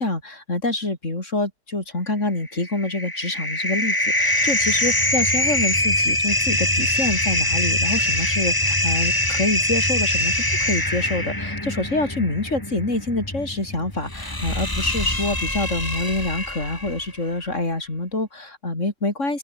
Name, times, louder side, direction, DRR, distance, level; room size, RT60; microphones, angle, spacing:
voice 1, 0.0-19.4, left 2 dB, 50° left, 5.5 m, -26 dB
sound 1, 2.5-17.1, left 1 dB, 15° left, 2.7 m, -23 dB
open air
omnidirectional pair, 1.7 m